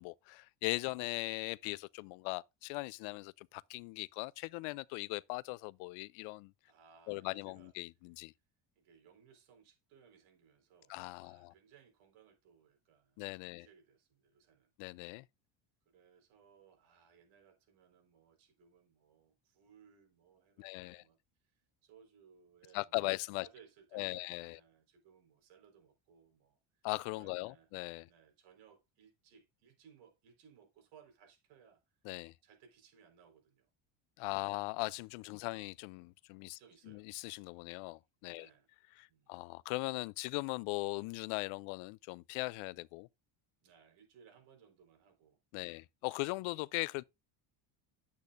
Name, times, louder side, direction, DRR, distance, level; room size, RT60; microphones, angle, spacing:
voice 1, 0.0-6.5 7.1-8.3 10.9-11.5 13.2-13.7 14.8-15.2 20.6-21.0 22.7-23.5 23.9-24.6 26.8-28.1 32.0-32.3 34.2-36.6 36.9-38.5 39.0-43.1 45.5-47.0, left 24 dB, 75° left, 0.6 m, -39 dB
voice 2, 6.7-7.7 8.8-14.7 15.9-21.2 21.4-26.9 27.2-27.7 28.1-31.8 32.4-33.7 34.2-34.4 35.2-35.4 36.6-37.1 38.3-38.7 39.1-39.4 43.6-45.8, right 7 dB, 70° right, 4.5 m, -64 dB
10.5 x 8.3 x 2.5 m
cardioid pair, 170°, 49 cm